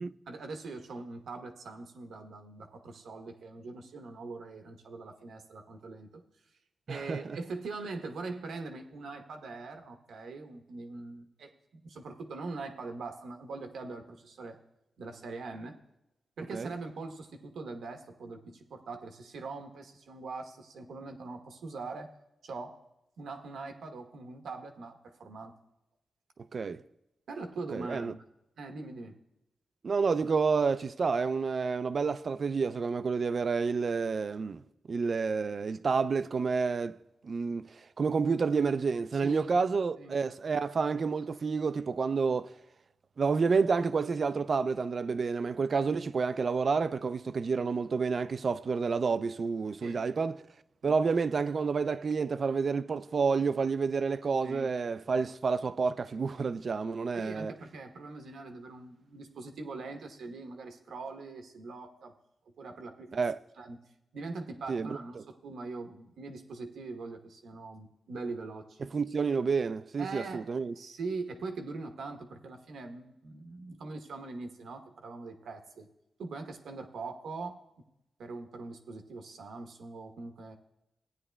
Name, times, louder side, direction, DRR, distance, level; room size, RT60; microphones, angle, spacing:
voice 1, 0.3-6.2 6.9-14.6 15.0-15.8 16.4-22.1 22.4-22.8 23.2-25.5 27.3-28.2 28.6-29.2 39.2-39.5 40.0-40.2 49.8-50.0 50.8-50.9 54.4-54.7 57.2-62.1 62.6-63.2 63.6-63.8 64.1-68.8 70.0-70.4 70.7-75.9 76.2-77.6 78.2-80.6, right 3 dB, 85° right, 1.0 m, -42 dB
voice 2, 6.9-7.4 16.5-16.7 26.5-26.8 27.7-28.1 29.8-34.6 34.9-37.0 37.2-37.7 38.0-42.5 43.2-50.4 50.8-57.5 63.1-63.4 64.7-65.2 68.8-70.7, right 5 dB, 50° right, 0.3 m, -29 dB
16.0 x 9.6 x 2.2 m
cardioid pair, 100°, 0 cm